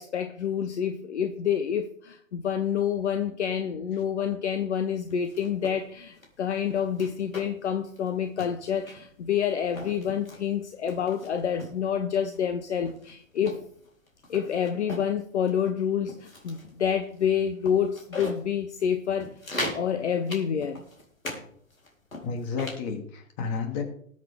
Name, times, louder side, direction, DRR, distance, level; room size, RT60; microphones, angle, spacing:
voice 1, 0.0-13.6 14.3-19.3 19.7-20.8, left 8 dB, 60° left, 9 dB, 1.1 m, -28 dB
sound 1, 5.1-5.8 6.2-6.3 6.7-7.7 8.0-8.1 8.4-9.1 9.6-10.4 10.9-11.8 12.3-12.4 12.9-15.1 15.5-15.7 16.1-16.7 17.2-17.3 17.6-18.4 18.8-18.9 19.2-19.9 20.3-21.4 21.7-22.8, left 1 dB, 80° left, 3.9 m, -38 dB
voice 2, 22.2-23.8, left 5 dB, 35° left, 4 dB, 2.8 m, -31 dB
20.5 x 7.8 x 3.6 m, 0.63 s
figure-of-eight pair, 115°, 40 cm